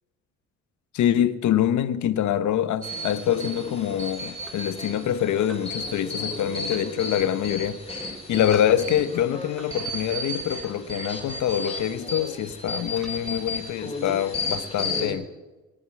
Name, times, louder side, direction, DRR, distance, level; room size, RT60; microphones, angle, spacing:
voice 1, 0.9-15.3, left 10 dB, 70° left, 0.9 m, -25 dB
sound 1, 2.8-15.1, left 2 dB, 20° left, 4.6 m, -33 dB
sound 2, 4.5-4.6 5.5-5.7 6.7-6.8 8.5-8.7 9.6-9.7 10.6-10.8 11.7-11.8 13.0-13.2 14.0-14.2, equal, ahead, 2.6 m, -44 dB
19.5 x 8.0 x 7.6 m
cardioid pair, 90°, 30 cm